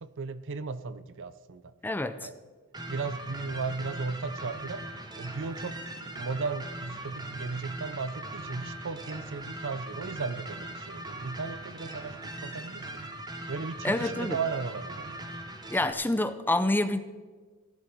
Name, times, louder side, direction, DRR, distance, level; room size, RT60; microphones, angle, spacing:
voice 1, 0.0-1.7 2.2-2.3 2.9-4.9 5.2-12.9 13.5-15.1, right 4 dB, 60° right, 15 dB, 0.6 m, -36 dB
voice 2, 1.8-2.3 13.8-14.4 15.7-17.0, left 1 dB, 10° left, 11 dB, 0.5 m, -27 dB
sound 1, 2.7-15.9, right 1 dB, 20° right, 1.1 m, -40 dB
16.0 x 11.0 x 4.6 m, 1.4 s
head